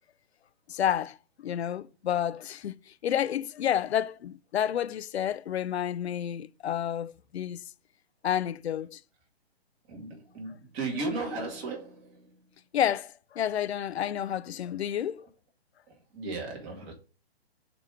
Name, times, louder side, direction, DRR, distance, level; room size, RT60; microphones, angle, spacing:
voice 1, 0.7-7.6 8.2-9.0 12.7-15.3, left 10 dB, 90° left, 0.5 m, -30 dB
voice 2, 9.9-12.3 16.1-16.9, right 3 dB, 30° right, 2.1 m, -35 dB
7.5 x 3.1 x 4.9 m
hypercardioid pair, 150°, 31 cm